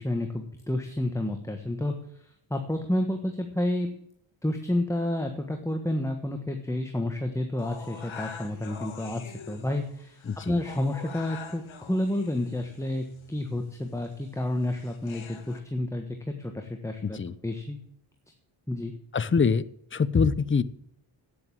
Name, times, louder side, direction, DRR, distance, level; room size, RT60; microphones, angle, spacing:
voice 1, 0.0-1.9 2.5-3.9 4.4-17.8 18.7-18.9, left 1 dB, 5° left, 4 dB, 1.3 m, -30 dB
sound 1, 7.6-15.6, left 5 dB, 70° left, 1.7 m, -45 dB
voice 2, 17.0-17.4 19.1-19.6 19.9-20.6, left 5 dB, 25° left, 15 dB, 0.6 m, -24 dB
9.5 x 7.8 x 7.5 m, 0.70 s
cardioid pair, 85°, 49 cm